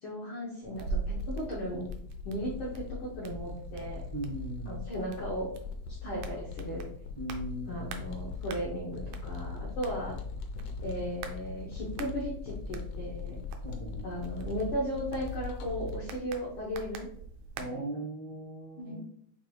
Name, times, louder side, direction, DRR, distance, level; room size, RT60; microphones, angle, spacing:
voice 1, 0.0-1.9 2.2-4.1 4.7-5.5 6.0-6.9 7.7-10.2 10.8-13.4 14.0-17.1 17.7-17.8 18.8-19.0, equal, 70° left, -5 dB, 1.3 m, -36 dB
sound 1, 0.6-16.0, left 6 dB, 85° left, 2.0 m, -41 dB
sound 2, 0.7-17.6, right 4 dB, 85° right, 2.0 m, -43 dB
voice 2, 4.1-4.8 7.2-7.9 13.6-14.0 17.6-19.0, right 2 dB, 65° right, -6 dB, 1.0 m, -38 dB
6.5 x 2.9 x 2.2 m, 0.62 s
omnidirectional pair, 3.4 m